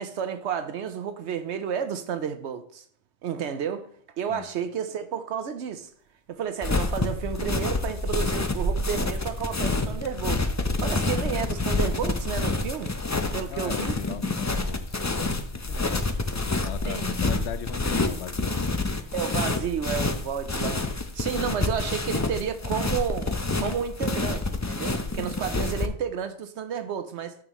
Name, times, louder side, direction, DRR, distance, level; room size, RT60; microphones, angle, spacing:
voice 1, 0.0-2.8 3.2-3.9 4.2-5.9 6.3-10.5 10.8-12.9 13.3-14.0 16.8-17.1 19.1-20.8 21.1-23.3 23.6-27.3, right 8 dB, 80° right, 1.0 m, -31 dB
sound 1, 6.3-6.4 6.7-6.8 7.1-7.2 7.5-7.7 8.3-10.2 10.8-10.9 11.7-11.8 12.8-12.9 13.1-13.3 13.7-13.9 14.5-14.6 14.9-15.2 16.0-17.0, right 3 dB, 15° right, 2.4 m, -36 dB
sound 2, 6.6-25.9, left 3 dB, 20° left, 0.4 m, -28 dB
voice 2, 13.5-16.1 16.4-18.7 21.4-21.5 25.2-25.4, left 10 dB, 75° left, 0.9 m, -39 dB
12.5 x 6.3 x 3.0 m
omnidirectional pair, 1.2 m